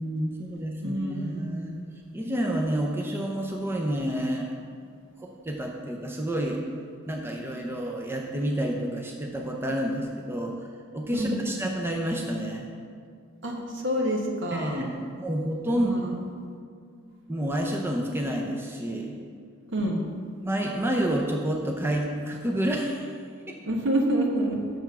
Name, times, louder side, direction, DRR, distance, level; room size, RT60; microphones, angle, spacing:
voice 1, 0.0-1.8 2.1-4.5 5.2-6.6 7.1-10.5 10.9-12.7 14.5-15.9 17.3-19.1 20.4-23.2 23.5-23.6, right 1 dB, 10° right, 0 dB, 0.7 m, -29 dB
voice 2, 0.8-1.5 11.1-11.4 13.4-14.9 15.7-16.2 19.7-20.1 23.7-24.6, right 1 dB, 65° right, 0 dB, 1.4 m, -27 dB
7.0 x 6.7 x 5.9 m, 2.2 s
head